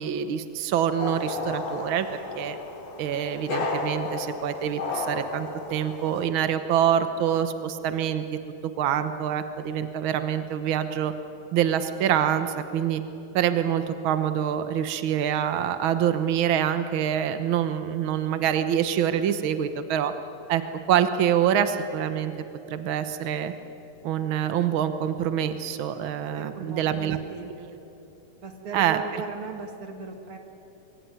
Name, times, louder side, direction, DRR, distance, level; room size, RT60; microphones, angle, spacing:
voice 1, 0.0-2.6 3.0-8.2 8.6-11.1 11.5-13.0 13.3-20.1 20.5-20.6 20.9-22.3 22.7-23.5 24.0-27.2 28.7-29.0, right 9 dB, 85° right, 10 dB, 1.1 m, -25 dB
sound 1, 1.0-6.2, left 3 dB, 85° left, 4.7 m, -33 dB
voice 2, 26.1-27.7 28.4-30.4, right 4 dB, 45° right, 4 dB, 2.9 m, -38 dB
25.0 x 22.5 x 9.5 m, 2.9 s
omnidirectional pair, 3.8 m